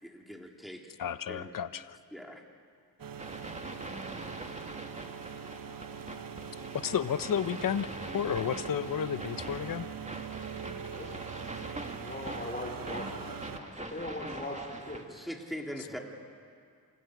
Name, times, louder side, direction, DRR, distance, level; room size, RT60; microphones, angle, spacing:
voice 1, 0.0-0.9 1.3-1.5 2.1-2.4 15.1-16.0, equal, ahead, 1 dB, 3.7 m, -41 dB
voice 2, 1.0-2.0 6.7-9.9, left 8 dB, 55° left, 13 dB, 0.9 m, -32 dB
sound 1, 3.0-13.6, right 7 dB, 60° right, 1.2 m, -43 dB
sound 2, 3.2-15.0, right 2 dB, 20° right, 2.2 m, -43 dB
voice 3, 10.9-11.2 12.0-15.2 15.9-16.0, left 1 dB, 25° left, -2 dB, 4.7 m, -40 dB
27.5 x 18.5 x 8.3 m, 2.2 s
cardioid pair, 60°, 39 cm